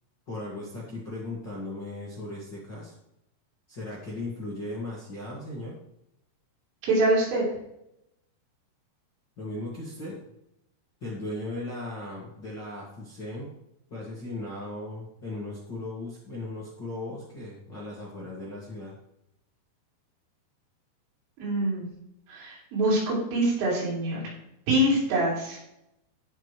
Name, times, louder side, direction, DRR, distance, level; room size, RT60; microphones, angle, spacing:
voice 1, 0.3-2.9 3.7-5.8 9.4-10.2 11.0-13.5 13.9-18.9, left 2 dB, 40° left, -7 dB, 1.8 m, -37 dB
voice 2, 6.8-7.4 21.4-21.9 22.3-24.2 24.7-25.6, right 1 dB, 85° right, -6 dB, 6.7 m, -25 dB
16.5 x 6.4 x 3.3 m, 0.81 s
omnidirectional pair, 5.5 m